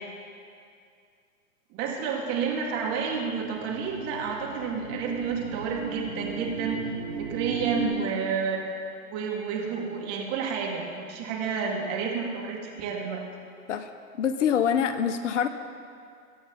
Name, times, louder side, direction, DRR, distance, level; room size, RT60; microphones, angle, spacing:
voice 1, 1.7-6.8 7.2-8.6 9.1-13.2, right 5 dB, 30° right, -1 dB, 2.7 m, -30 dB
sound 1, 2.3-7.9, right 4 dB, 10° right, 4.1 m, -37 dB
voice 2, 14.2-15.5, left 8 dB, 55° left, 10 dB, 0.9 m, -25 dB
22.5 x 8.6 x 4.2 m, 2.3 s
hypercardioid pair, 125°, 45 cm